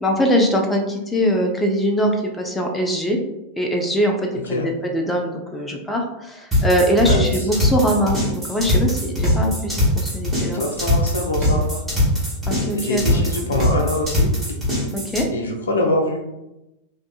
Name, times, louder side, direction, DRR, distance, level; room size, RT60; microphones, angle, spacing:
voice 1, 0.0-3.2 3.6-10.6 12.5-13.3 14.9-15.2, equal, 10° left, 2 dB, 0.4 m, -22 dB
sound 1, 6.5-15.2, left 1 dB, 5° right, 1.5 m, -21 dB
voice 2, 7.1-7.5 10.4-11.8 12.7-14.3 15.3-16.2, left 2 dB, 70° left, 2 dB, 0.6 m, -24 dB
3.5 x 2.6 x 2.3 m, 0.92 s
figure-of-eight pair, 90°, 0 cm